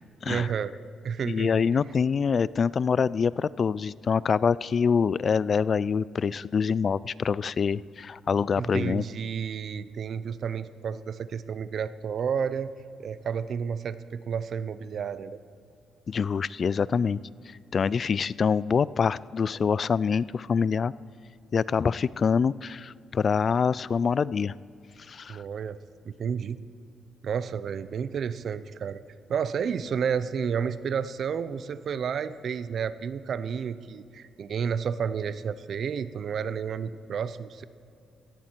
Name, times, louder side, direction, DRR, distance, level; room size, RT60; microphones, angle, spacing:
voice 1, 0.3-0.7 1.0-1.5 8.6-12.7 13.0-15.4 25.3-25.8 26.0-26.6 27.2-29.0 29.3-37.6, right 7 dB, 60° right, 15 dB, 0.7 m, -31 dB
voice 2, 1.3-9.0 16.1-17.2 17.7-20.9 21.5-24.6 25.1-25.4, left 6 dB, 45° left, 20 dB, 0.3 m, -25 dB
18.0 x 14.0 x 4.6 m, 2.5 s
cardioid pair, 90°, 0 cm